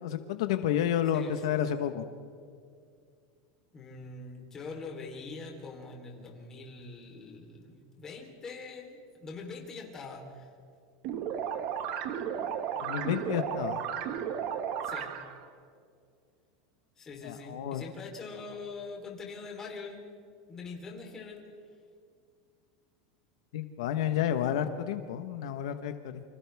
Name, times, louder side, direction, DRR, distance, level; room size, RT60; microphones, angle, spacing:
voice 1, 0.0-2.0 12.8-13.8 17.2-17.8 23.5-26.2, left 10 dB, 80° left, 8 dB, 1.2 m, -30 dB
voice 2, 1.1-1.9 3.7-10.5 12.5-12.8 14.8-15.2 17.0-20.1 20.5-21.5, left 4 dB, 20° left, 0 dB, 3.6 m, -44 dB
sound 1, 11.0-15.5, right 8 dB, 50° right, 1.6 m, -34 dB
29.0 x 25.5 x 3.5 m, 2.2 s
supercardioid pair, 160°, 3 cm